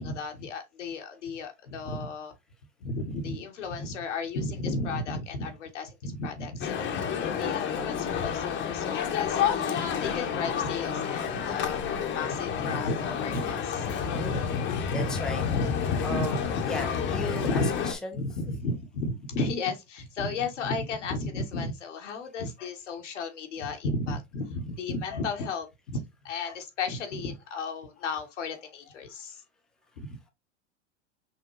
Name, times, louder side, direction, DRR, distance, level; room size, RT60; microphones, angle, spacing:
voice 1, 0.0-2.3 2.8-15.2 15.5-16.3 16.6-16.7 17.1-17.7 18.1-29.4 30.0-30.1, left 3 dB, 85° left, 1.3 m, -34 dB
Male speech man speaking, 6.6-17.9, left 7 dB, 30° left, 0.9 m, -30 dB
voice 2, 14.9-15.4 16.0-16.4 16.7-17.6 17.9-18.2, left 1 dB, ahead, 0.6 m, -35 dB
5.9 x 2.2 x 3.0 m
hypercardioid pair, 110°, 35 cm